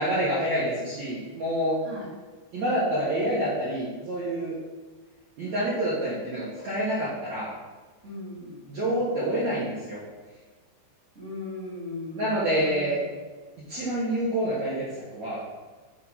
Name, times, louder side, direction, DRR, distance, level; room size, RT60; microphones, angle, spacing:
voice 1, 0.0-1.8 2.5-4.5 5.4-7.5 8.7-10.0 12.1-13.0 13.7-15.4, right 1 dB, 75° right, -9 dB, 1.6 m, -27 dB
voice 2, 8.0-8.7 11.1-13.0, left 2 dB, 35° right, -10 dB, 1.1 m, -38 dB
6.6 x 3.7 x 5.6 m, 1.3 s
omnidirectional pair, 5.4 m